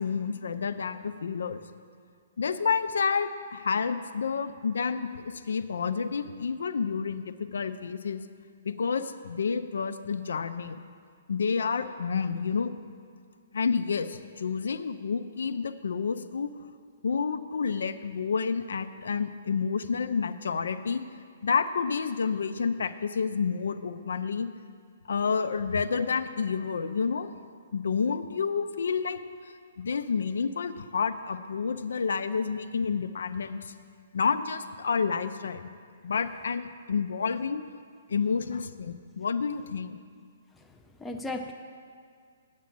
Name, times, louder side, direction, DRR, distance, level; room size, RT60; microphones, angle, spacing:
voice 1, 0.0-1.6 2.4-8.2 8.6-10.8 11.3-12.7 13.5-16.5 17.0-21.0 21.4-24.5 25.1-27.3 27.7-29.2 29.8-33.7 34.1-35.7 36.0-37.6 38.1-40.0, left 5 dB, 80° left, 11 dB, 0.6 m, -29 dB
voice 2, 40.5-41.5, left 2 dB, 5° left, 3 dB, 0.4 m, -37 dB
8.5 x 8.3 x 7.6 m, 2.2 s
hypercardioid pair, 175°, 0 cm